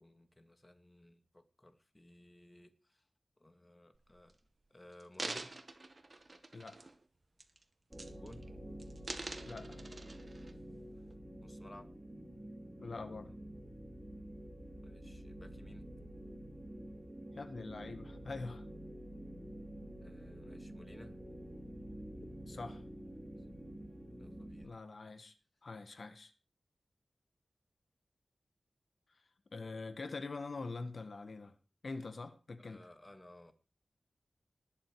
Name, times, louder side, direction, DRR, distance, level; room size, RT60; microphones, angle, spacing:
voice 1, 0.0-3.1 3.4-4.4 4.7-5.5 8.1-8.6 11.4-11.9 14.8-15.9 20.0-21.2 24.2-24.8 32.6-33.5, left 1 dB, 25° left, 2.1 m, -57 dB
sound 1, 3.9-4.3 4.9-7.0 7.4-7.6 7.9-8.5 8.8-10.5 11.1-11.2, right 2 dB, 45° right, 2.1 m, -45 dB
voice 2, 6.5-6.9 9.5-9.8 12.8-13.3 17.3-18.6 22.5-22.8 24.6-25.3 25.6-26.3 29.5-31.5 31.8-32.8, left 3 dB, 65° left, 1.6 m, -44 dB
sound 2, 7.9-24.6, right 1 dB, 20° right, 3.8 m, -49 dB
19.5 x 7.6 x 4.7 m
wide cardioid pair, 65°, 0 cm